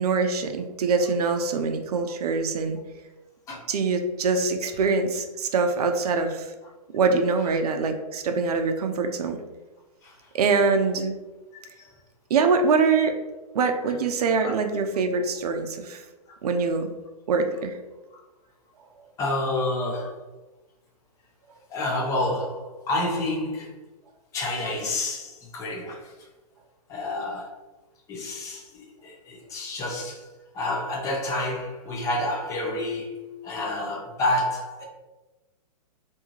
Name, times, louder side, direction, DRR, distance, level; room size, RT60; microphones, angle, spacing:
voice 1, 0.0-2.8 3.7-6.5 6.9-9.4 10.3-11.1 12.3-13.1 13.5-16.0 16.4-16.9 17.3-17.7, right 4 dB, 75° right, 6 dB, 0.5 m, -24 dB
voice 2, 19.2-20.3 21.7-23.8 24.3-26.3 26.9-27.6 28.1-34.8, left 1 dB, 15° left, 0 dB, 0.5 m, -29 dB
2.6 x 2.3 x 2.9 m, 1.1 s
hypercardioid pair, 140°, 20 cm